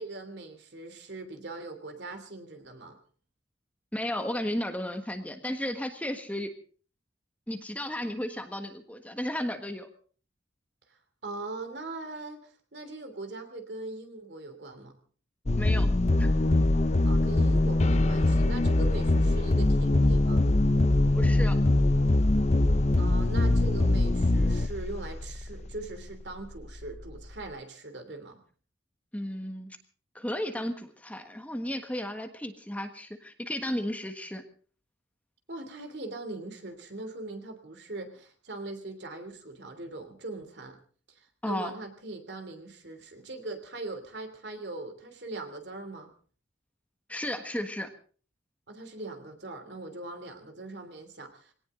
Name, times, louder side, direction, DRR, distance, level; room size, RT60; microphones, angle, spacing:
voice 1, 0.0-3.0 11.2-14.9 17.0-20.4 22.9-28.4 35.5-40.8 41.1-46.1 48.7-51.5, right 2 dB, 65° right, 6 dB, 3.1 m, -41 dB
voice 2, 3.9-6.5 7.5-9.9 15.6-15.9 16.2-16.3 21.1-21.6 29.1-29.8 30.1-34.4 41.4-41.7 47.1-47.9, left 1 dB, 10° left, 6 dB, 1.4 m, -34 dB
sound 1, 15.5-25.7, left 2 dB, 40° left, 0.7 m, -23 dB
21.0 x 18.0 x 3.8 m, 0.42 s
head